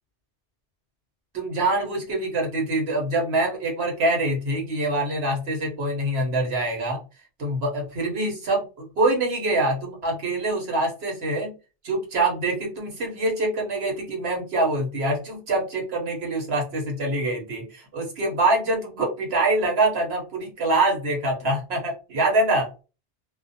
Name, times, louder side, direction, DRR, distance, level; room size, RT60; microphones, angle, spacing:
voice 1, 1.3-7.0 7.4-11.5 11.8-22.7, right 2 dB, 70° right, 0 dB, 1.1 m, -25 dB
2.4 x 2.0 x 2.7 m, 0.32 s
omnidirectional pair, 1.1 m